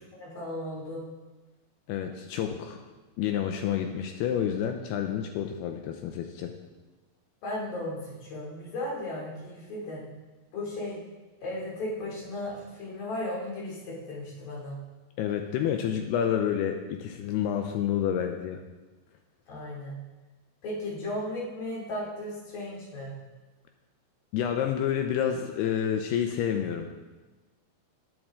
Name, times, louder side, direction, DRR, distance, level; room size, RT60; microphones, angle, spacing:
voice 1, 0.2-1.0 7.4-10.0 10.5-11.0 11.4-14.8 19.5-20.0 20.6-23.1, left 1 dB, 55° left, -4 dB, 4.3 m, -35 dB
voice 2, 1.9-2.8 3.2-6.5 15.2-18.6 24.3-27.0, left 9 dB, 80° left, 5 dB, 2.6 m, -29 dB
15.5 x 8.8 x 3.7 m, 1.2 s
omnidirectional pair, 4.9 m